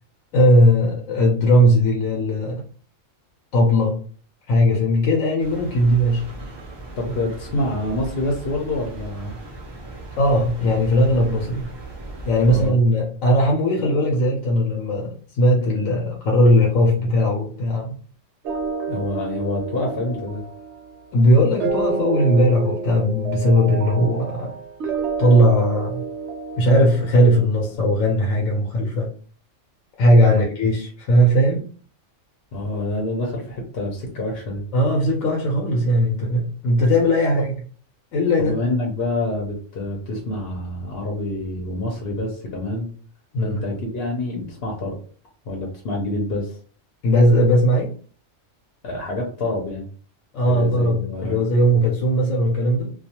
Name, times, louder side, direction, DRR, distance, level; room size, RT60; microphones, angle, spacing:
voice 1, 0.3-2.6 3.5-4.1 4.5-6.3 10.2-11.6 12.2-18.0 21.1-24.6 25.2-26.0 26.6-29.1 30.0-31.7 34.7-37.5 38.1-38.6 43.3-43.6 47.0-47.9 50.3-52.9, equal, 85° left, 1.0 m, -18 dB
sound 1, 5.4-12.7, right 1 dB, 30° right, 0.5 m, -37 dB
voice 2, 7.0-9.4 12.4-12.8 18.9-20.4 30.3-30.4 32.5-34.6 37.4-37.5 38.4-42.9 43.4-45.0 45.5-46.6 48.8-49.9 50.5-51.4, left 1 dB, 60° left, 0.8 m, -27 dB
sound 2, 18.5-27.6, right 4 dB, 70° right, 0.8 m, -29 dB
2.3 x 2.2 x 2.8 m
omnidirectional pair, 1.3 m